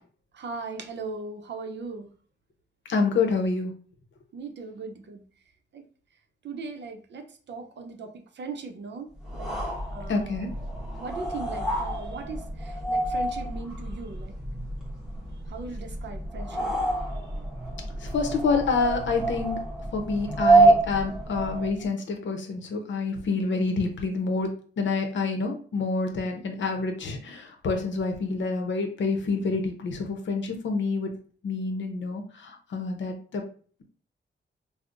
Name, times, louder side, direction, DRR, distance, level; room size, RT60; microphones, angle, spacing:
voice 1, 0.3-2.1 4.3-5.2 5.7-5.9 6.4-9.1 9.3-9.6 9.9-10.4 11.0-14.3 15.5-16.7 17.8-17.9, right 4 dB, 65° right, 5 dB, 0.6 m, -38 dB
voice 2, 2.9-3.7 10.1-10.5 18.0-19.6 19.9-24.5 24.8-31.1 31.4-33.4, left 4 dB, 70° left, 4 dB, 0.7 m, -27 dB
sound 1, 9.2-21.8, right 2 dB, 5° right, 0.9 m, -27 dB
5.2 x 2.0 x 2.5 m, 0.43 s
wide cardioid pair, 170°, 20 cm